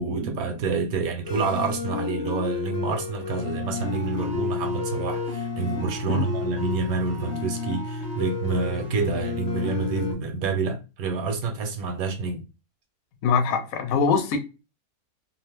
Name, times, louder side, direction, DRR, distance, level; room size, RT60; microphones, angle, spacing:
voice 1, 0.0-12.4, right 4 dB, 70° right, 1.1 m, -28 dB
sound 1, 1.2-10.1, left 4 dB, 45° left, 1.1 m, -31 dB
voice 2, 13.2-14.4, left 5 dB, 70° left, 1.0 m, -23 dB
2.8 x 2.5 x 3.3 m
omnidirectional pair, 1.7 m